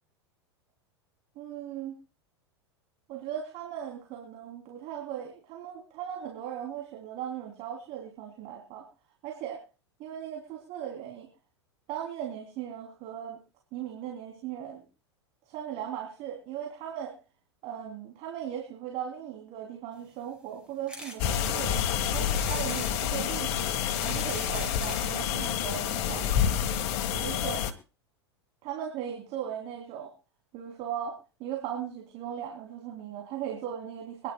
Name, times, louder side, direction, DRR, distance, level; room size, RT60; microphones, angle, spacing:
voice 1, 1.3-1.9 3.1-8.8 9.2-9.6 10.0-11.3 11.9-13.4 13.7-14.8 15.5-17.2 17.6-21.8 22.1-23.7 24.0-26.5 27.1-27.6 28.6-30.1 30.5-34.3, right 10 dB, 45° right, 1 dB, 3.2 m, -38 dB
sound 1, 20.9-21.2 21.7-21.8 22.4-23.0 23.7-25.1 25.9-26.0 26.2-26.3 26.5-26.6, left 1 dB, 5° right, 4.7 m, -42 dB
sound 2, 21.2-27.7, left 9 dB, 55° left, 1.6 m, -28 dB
25.0 x 11.0 x 2.3 m, 0.32 s
hypercardioid pair, 90°, 14 cm